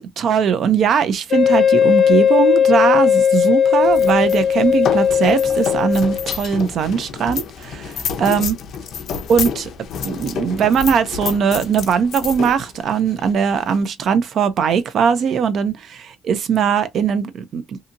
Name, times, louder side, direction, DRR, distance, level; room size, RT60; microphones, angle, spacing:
voice 1, 0.0-8.6 9.3-9.7 10.0-17.8, right 7 dB, 55° right, 0.5 m, -20 dB
Wind instrument woodwind instrument, 1.3-6.4, left 8 dB, 50° left, 1.0 m, -16 dB
sound 1, 3.8-13.8, left 7 dB, 65° left, 0.5 m, -29 dB
2.7 x 2.7 x 2.4 m
cardioid pair, 155°, 0 cm